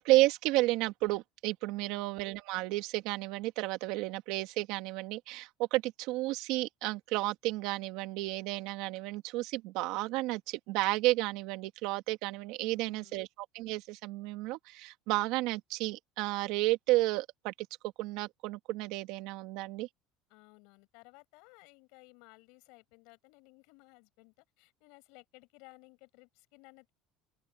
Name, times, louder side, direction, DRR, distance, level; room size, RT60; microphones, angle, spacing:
voice 1, 0.0-13.3 13.5-17.5 17.8-19.9, right 19 dB, 65° right, 2.3 m, -32 dB
voice 2, 1.8-2.2 12.7-13.3 20.3-26.9, left 29 dB, 70° left, 7.1 m, -58 dB
open air
cardioid pair, 165°, 0 cm